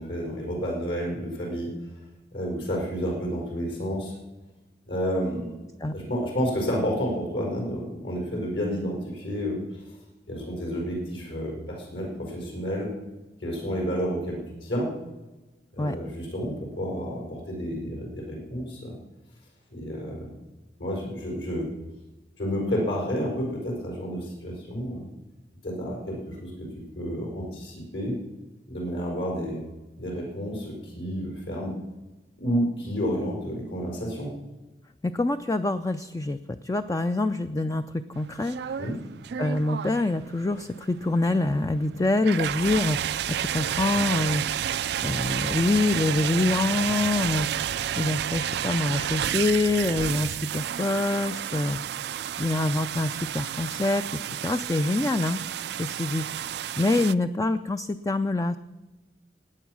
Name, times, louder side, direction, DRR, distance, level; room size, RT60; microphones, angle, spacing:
voice 1, 0.0-1.7 2.3-4.1 4.9-5.5 5.9-9.8 10.3-12.9 13.4-14.9 15.7-18.9 19.7-20.3 20.8-21.7 22.4-25.0 25.6-26.7 26.9-28.1 28.7-29.6 30.0-31.7 32.4-34.3 38.8-38.9, equal, 75° left, -1 dB, 4.7 m, -30 dB
voice 2, 35.0-38.8 39.4-44.4 45.0-47.5 48.0-51.8 52.4-55.4 55.8-58.6, left 2 dB, 20° left, 9 dB, 0.4 m, -26 dB
sound 1, 38.2-57.1, right 10 dB, 65° right, 0.4 m, -31 dB
17.5 x 9.1 x 6.2 m, 1.1 s
head